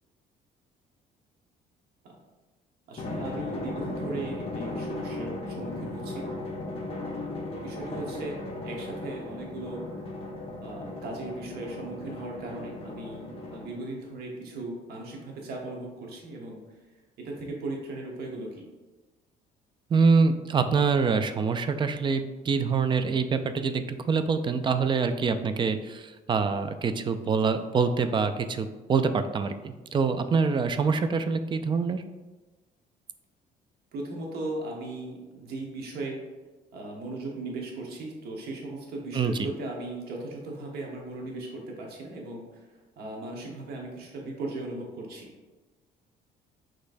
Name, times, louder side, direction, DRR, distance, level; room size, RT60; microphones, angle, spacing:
voice 1, 2.9-6.3 7.2-9.8 10.6-16.8 17.2-18.6 33.9-36.2 36.7-42.7 43.0-45.3, right 2 dB, 70° right, -1 dB, 1.1 m, -37 dB
Drum, 3.0-14.0, left 2 dB, 35° left, 1.0 m, -36 dB
voice 2, 19.9-32.0 39.1-39.4, right 5 dB, 30° right, 9 dB, 0.3 m, -25 dB
6.4 x 3.1 x 2.6 m, 1.2 s
cardioid pair, 110°, 17 cm